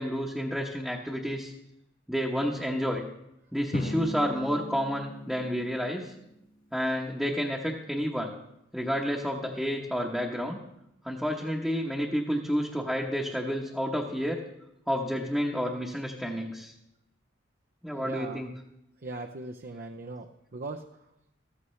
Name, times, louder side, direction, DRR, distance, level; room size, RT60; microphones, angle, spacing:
voice 1, 0.0-1.5 2.1-3.0 3.5-6.1 6.7-8.3 8.7-10.6 11.0-14.4 14.9-16.7 17.8-18.5, equal, ahead, -3 dB, 0.9 m, -30 dB
Drum, 3.7-6.4, equal, 50° left, 1.3 m, -37 dB
voice 2, 18.0-18.4 19.0-20.3 20.5-20.9, right 2 dB, 50° right, 4 dB, 0.6 m, -38 dB
14.0 x 14.0 x 3.2 m, 0.83 s
head